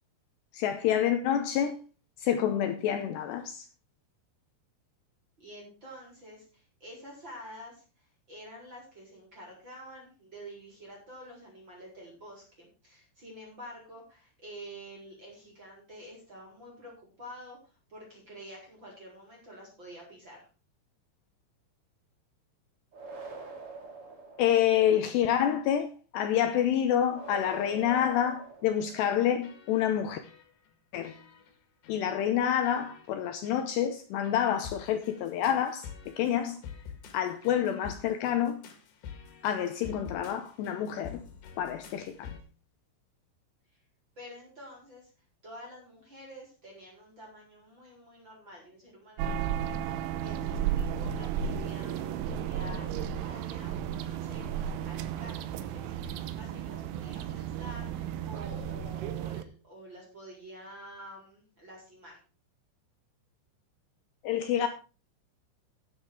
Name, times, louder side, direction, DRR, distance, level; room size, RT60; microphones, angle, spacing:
voice 1, 0.5-1.8 2.2-3.7 24.4-30.2 30.9-31.1 31.9-35.9 36.2-36.6 37.1-38.6 39.4-41.2 41.6-42.3 64.2-64.7, left 10 dB, 80° left, 2.4 m, -28 dB
voice 2, 5.4-20.5 44.2-45.1 45.4-62.2, equal, 25° right, 4.4 m, -48 dB
sound 1, 22.9-25.0 27.1-29.2, right 3 dB, 45° right, 1.9 m, -45 dB
sound 2, 28.7-29.1 29.4-30.0 30.2-30.7 31.0-31.5 31.8-32.1 32.6-33.1 33.4-33.7 34.2-42.4, left 7 dB, 60° left, 3.6 m, -48 dB
sound 3, 49.2-59.4, right 9 dB, 80° right, 3.4 m, -34 dB
10.0 x 9.9 x 4.8 m
omnidirectional pair, 6.0 m